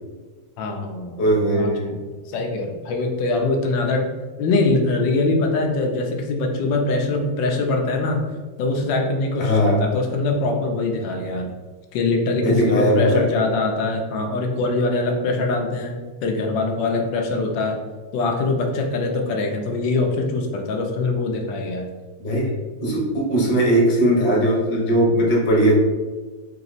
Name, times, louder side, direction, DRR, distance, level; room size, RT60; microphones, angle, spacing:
voice 1, 0.6-1.2 1.5-1.9 2.3-4.1 4.4-8.2 8.6-11.5 11.9-16.0 16.2-17.8 18.1-21.9, left 3 dB, 85° left, 2 dB, 1.4 m, -23 dB
voice 2, 1.2-1.9 9.4-9.8 12.4-13.2 22.2-22.5 22.8-25.7, right 1 dB, 35° left, -3 dB, 0.8 m, -19 dB
3.4 x 2.9 x 4.0 m, 1.3 s
omnidirectional pair, 1.9 m